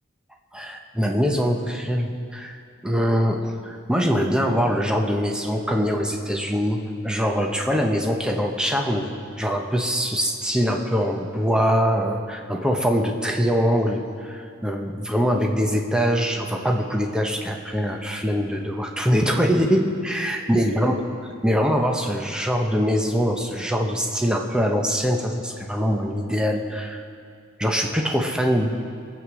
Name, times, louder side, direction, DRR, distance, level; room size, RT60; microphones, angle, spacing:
voice 1, 0.5-2.6 2.8-21.0 21.4-27.0 27.6-28.8, equal, 5° right, 2 dB, 1.0 m, -23 dB
22.5 x 8.1 x 6.2 m, 2.3 s
head